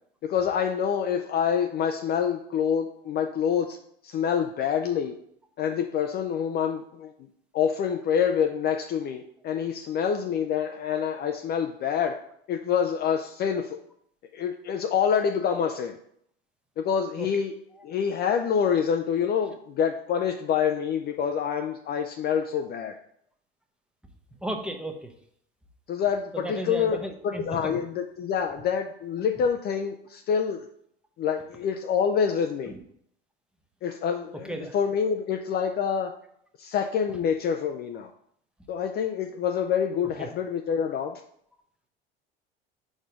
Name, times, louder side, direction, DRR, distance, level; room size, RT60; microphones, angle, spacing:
voice 1, 0.2-3.8 4.0-5.2 5.6-7.1 7.5-12.2 12.5-13.8 14.3-16.0 16.8-17.5 17.8-22.9 25.9-27.0 27.2-30.7 31.2-32.7 33.8-36.1 36.6-38.1 38.7-41.2, left 7 dB, 35° left, 5 dB, 0.5 m, -26 dB
voice 2, 24.4-25.1 26.3-27.8 32.7-32.8 34.4-34.7 40.2-40.3, right 1 dB, 5° right, 3 dB, 0.8 m, -34 dB
5.0 x 4.2 x 4.8 m, 0.69 s
figure-of-eight pair, 70°, 29 cm